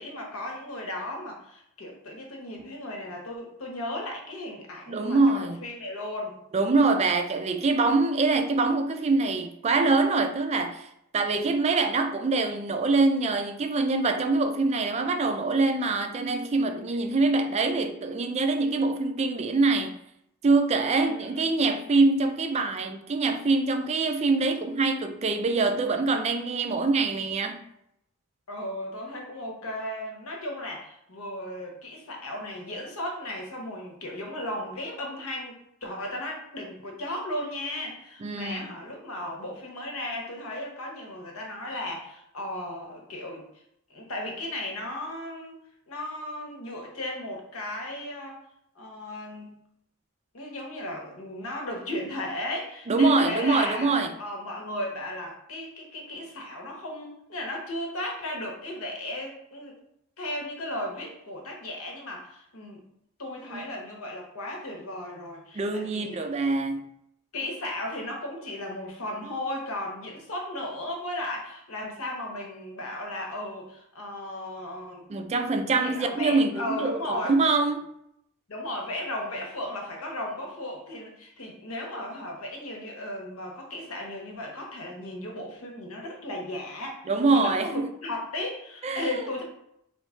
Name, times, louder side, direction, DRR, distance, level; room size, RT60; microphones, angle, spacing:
voice 1, 0.0-6.4 21.0-21.5 28.5-43.4 43.9-45.6 45.9-48.4 48.7-49.5 50.3-53.9 54.2-59.8 60.2-62.8 63.2-66.2 67.3-75.1 75.6-77.4 78.5-89.4, left 1 dB, 70° left, 0.9 m, -35 dB
voice 2, 4.9-5.6 6.5-10.9 11.1-19.9 20.4-27.6 38.2-38.6 52.9-54.1 63.5-63.6 65.5-66.9 75.1-77.8 87.1-87.7 88.8-89.2, right 3 dB, 30° right, 0.3 m, -24 dB
3.1 x 2.3 x 4.3 m
head